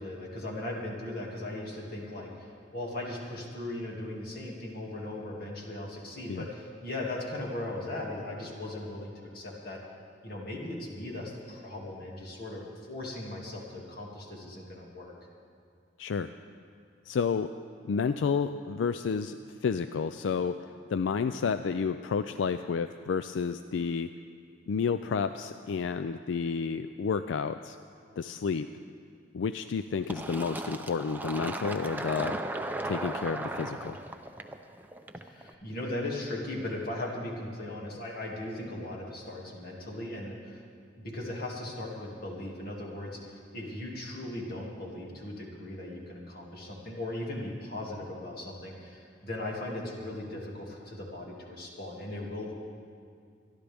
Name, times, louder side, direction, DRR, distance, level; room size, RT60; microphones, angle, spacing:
voice 1, 0.0-9.8 10.2-15.1 35.2-40.6 41.0-52.5, left 1 dB, 55° left, -2 dB, 2.3 m, -38 dB
voice 2, 16.0-16.3 17.1-17.5 17.8-19.4 19.6-20.6 20.9-24.1 24.7-27.8 28.2-28.7 29.3-32.4 32.8-34.0, left 5 dB, 90° left, 10 dB, 0.4 m, -30 dB
Fill (with liquid), 30.1-35.5, right 2 dB, 10° right, 0.5 m, -36 dB
25.5 x 11.5 x 3.5 m, 2.4 s
head